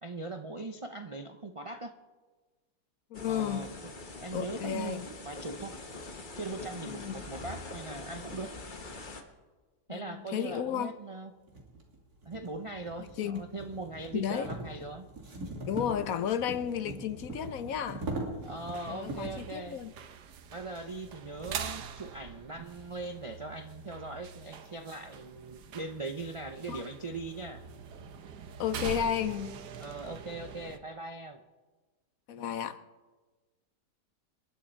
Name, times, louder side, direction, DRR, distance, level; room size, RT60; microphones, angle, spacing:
voice 1, 0.0-1.9 3.2-3.7 4.2-5.8 6.3-8.5 9.9-11.3 12.2-15.1 18.4-19.8 20.5-27.6 29.8-31.4, right 3 dB, 50° right, 0.4 m, -40 dB
voice 2, 3.1-3.7 4.3-5.1 6.9-7.1 9.9-11.0 13.0-13.4 14.1-14.5 15.7-18.0 18.9-19.9 26.7-26.8 28.6-29.6 32.3-32.8, left 9 dB, 65° left, 1.1 m, -33 dB
sound 1, 3.1-9.2, left 2 dB, 30° left, 1.3 m, -44 dB
sound 2, 10.7-10.8 11.5-19.5, right 2 dB, 65° right, 3.0 m, -41 dB
sound 3, 18.4-30.8, right 7 dB, 85° right, 1.5 m, -44 dB
27.0 x 11.5 x 4.5 m
omnidirectional pair, 1.7 m